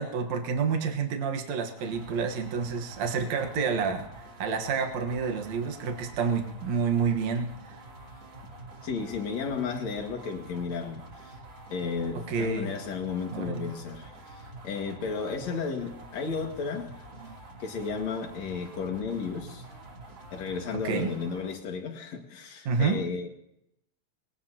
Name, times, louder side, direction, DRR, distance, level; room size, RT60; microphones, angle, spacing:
voice 1, 0.0-7.8 12.1-12.7 13.3-13.6 17.2-17.3 20.8-21.1 22.7-23.0, right 5 dB, 70° right, 2.6 m, -29 dB
sound 1, 1.8-21.6, right 1 dB, 40° right, 3.3 m, -47 dB
voice 2, 8.8-11.3 11.7-16.9 17.6-19.7 20.3-23.3, left 5 dB, 65° left, 3.2 m, -33 dB
21.0 x 18.5 x 2.9 m
omnidirectional pair, 3.4 m